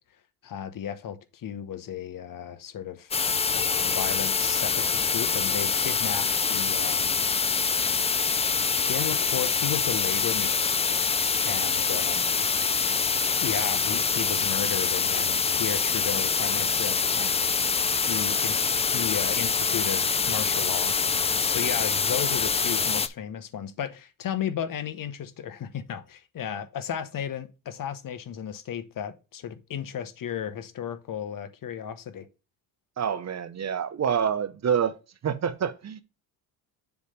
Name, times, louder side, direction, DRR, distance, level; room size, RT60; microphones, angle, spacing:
voice 1, 0.4-3.1 3.5-7.3 8.9-11.0 11.4-12.3 13.4-17.5 18.0-32.3, left 9 dB, 50° left, 1.1 m, -34 dB
sound 1, 3.1-23.1, left 5 dB, 15° left, 0.4 m, -25 dB
voice 2, 33.0-34.9 35.2-36.0, right 8 dB, 40° right, 0.9 m, -27 dB
7.1 x 3.2 x 5.5 m
supercardioid pair, 85°, 43 cm